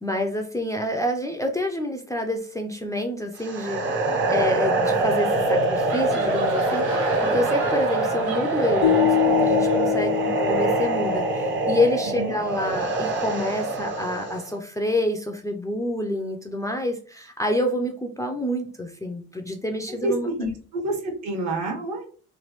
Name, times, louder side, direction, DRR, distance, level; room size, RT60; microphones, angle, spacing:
voice 1, 0.0-3.8 4.3-20.3, left 1 dB, 10° left, 2 dB, 0.4 m, -27 dB
sound 1, 3.4-14.5, right 2 dB, 40° right, 0.7 m, -24 dB
sound 2, 5.6-11.2, right 1 dB, 85° right, 0.8 m, -35 dB
sound 3, 8.8-12.0, left 19 dB, 85° left, 0.6 m, -25 dB
voice 2, 19.9-22.0, right 2 dB, 65° right, 1 dB, 1.2 m, -28 dB
3.1 x 2.2 x 3.0 m, 0.41 s
cardioid pair, 90°, 30 cm